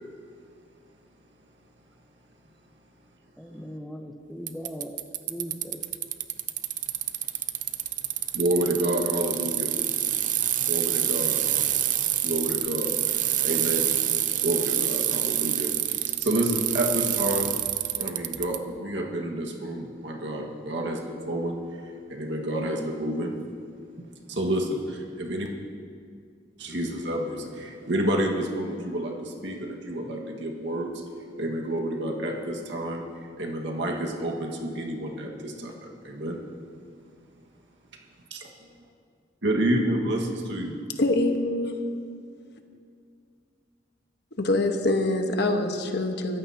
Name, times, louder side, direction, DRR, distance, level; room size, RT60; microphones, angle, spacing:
voice 1, 3.4-5.0 5.3-5.8, equal, ahead, 4 dB, 0.9 m, -39 dB
Bicycle, 4.5-18.6, right 12 dB, 45° right, 0.6 m, -27 dB
voice 2, 8.3-9.7 10.7-11.7 12.2-13.9 14.4-17.5 18.0-23.4 24.3-25.5 26.6-31.0 31.4-36.4 38.3-38.7 39.4-40.7, right 1 dB, 70° right, 0 dB, 1.7 m, -29 dB
voice 3, 41.0-41.8 44.4-46.4, left 2 dB, 65° left, 4 dB, 1.3 m, -25 dB
23.0 x 14.5 x 2.9 m, 2.3 s
head